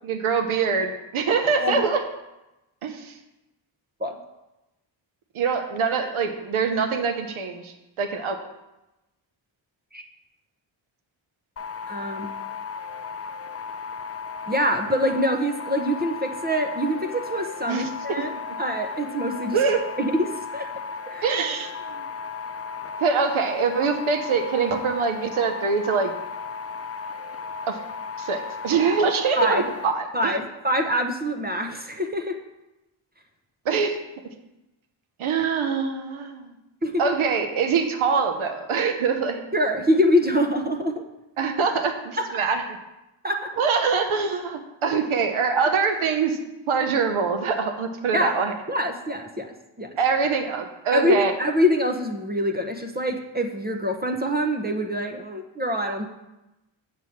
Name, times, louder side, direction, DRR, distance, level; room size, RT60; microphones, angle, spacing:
voice 1, 0.0-2.0 2.8-3.2 5.3-8.4 17.7-18.4 19.5-19.8 21.2-22.1 23.0-26.1 27.7-27.8 28.2-30.3 33.6-34.0 35.2-36.5 37.0-39.4 41.4-42.6 43.6-46.4 46.7-48.5 50.0-51.3, right 5 dB, 85° right, 6 dB, 1.0 m, -24 dB
sound 1, 11.6-29.9, left 5 dB, 30° left, 0.5 m, -35 dB
voice 2, 11.9-12.3 14.5-18.3 18.6-19.6 20.0-20.3 20.5-20.8 21.1-21.2 29.4-29.6 30.1-32.3 36.8-37.0 39.5-41.0 43.2-43.5 48.1-48.3 48.7-49.5 49.8-49.9 50.9-56.1, equal, 20° right, 4 dB, 0.7 m, -24 dB
7.6 x 4.7 x 7.2 m, 0.97 s
wide cardioid pair, 110°, 48 cm